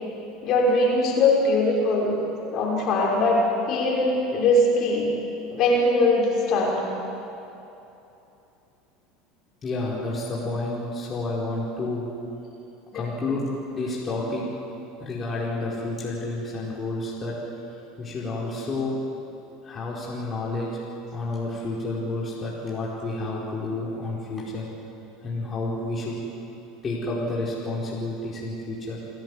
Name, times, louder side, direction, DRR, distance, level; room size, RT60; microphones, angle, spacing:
voice 1, 0.4-2.2 2.5-3.4 3.7-5.1 5.5-6.8 12.9-13.0, left 2 dB, 50° left, -3 dB, 6.2 m, -21 dB
voice 2, 9.6-12.1 12.9-14.4 15.0-17.3 17.7-19.0 19.6-20.7 21.1-24.6 25.2-26.2 26.8-29.0, left 2 dB, 30° left, -6 dB, 4.7 m, -30 dB
29.5 x 10.5 x 9.9 m, 2.9 s
hypercardioid pair, 85°, 0 cm